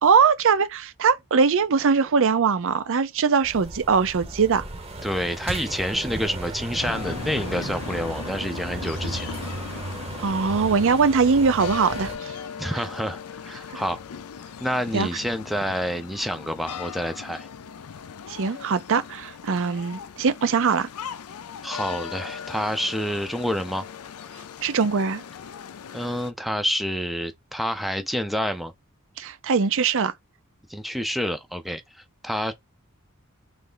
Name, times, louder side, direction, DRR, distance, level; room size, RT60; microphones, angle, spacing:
voice 1, 0.0-4.6 10.2-12.3 13.7-13.8 14.9-15.1 18.3-20.9 24.6-25.2 29.2-30.1, right 5 dB, 65° right, 0.6 m, -21 dB
sound 1, 3.4-12.2, right 2 dB, 30° right, 0.8 m, -35 dB
voice 2, 5.0-9.4 12.6-14.0 14.6-17.5 21.6-23.8 25.9-28.7 30.7-31.8 32.2-32.5, equal, ahead, 0.5 m, -28 dB
sound 2, 6.8-26.3, left 7 dB, 80° left, 0.5 m, -38 dB
3.3 x 3.1 x 3.8 m
head